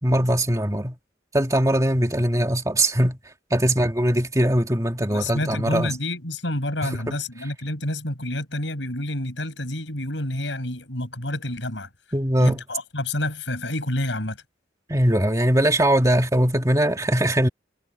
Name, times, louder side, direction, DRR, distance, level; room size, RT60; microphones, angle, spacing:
voice 1, 0.0-1.0 1.3-3.2 3.5-5.9 6.8-7.1 12.1-12.6 14.9-17.5, right 1 dB, 20° right, 2.4 m, -21 dB
voice 2, 5.1-11.9 12.4-14.4, left 1 dB, 90° left, 6.3 m, -29 dB
head